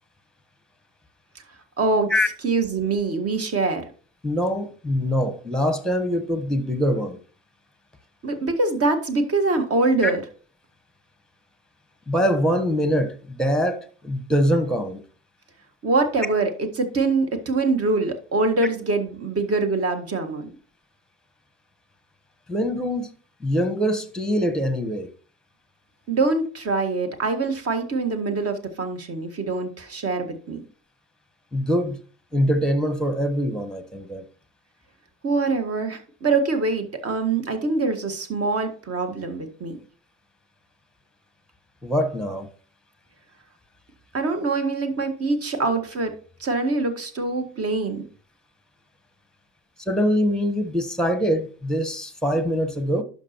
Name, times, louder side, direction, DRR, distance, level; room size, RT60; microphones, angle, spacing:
voice 1, 1.8-2.1 2.4-3.8 8.2-10.2 15.8-20.5 26.1-30.6 35.2-39.8 44.1-46.1 46.4-48.0, right 3 dB, 40° right, 1.7 m, -24 dB
voice 2, 4.2-7.2 10.0-10.1 12.1-15.0 22.5-23.1 23.4-25.1 31.5-32.0 32.3-34.2 41.8-42.5 49.9-53.0, equal, ahead, 1.1 m, -23 dB
11.5 x 5.4 x 3.0 m
hypercardioid pair, 60°, 37 cm